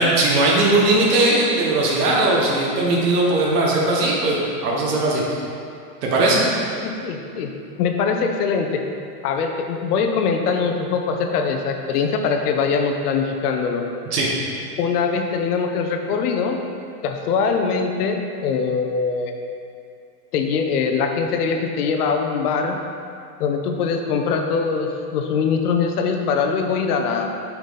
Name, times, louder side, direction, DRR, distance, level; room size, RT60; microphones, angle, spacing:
voice 1, 0.0-5.2 6.0-6.4 14.1-14.3, right 2 dB, 85° right, -3 dB, 1.4 m, -19 dB
voice 2, 6.8-7.5 7.8-8.8 9.2-13.8 14.8-16.6 17.0-19.3 20.3-22.8 23.4-27.3, left 5 dB, 75° left, 4 dB, 0.8 m, -22 dB
5.9 x 4.0 x 5.1 m, 2.4 s
supercardioid pair, 175°, 46 cm